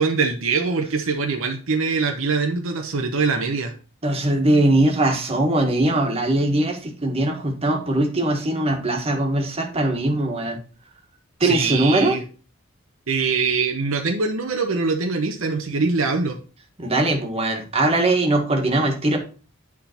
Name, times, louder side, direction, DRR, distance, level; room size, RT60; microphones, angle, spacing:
voice 1, 0.0-3.7 11.4-12.2 13.1-16.4, right 4 dB, 70° right, 4 dB, 0.9 m, -23 dB
voice 2, 4.0-10.6 11.4-12.1 16.8-19.2, right 1 dB, 30° right, 2 dB, 1.5 m, -21 dB
9.4 x 3.7 x 4.3 m, 0.36 s
head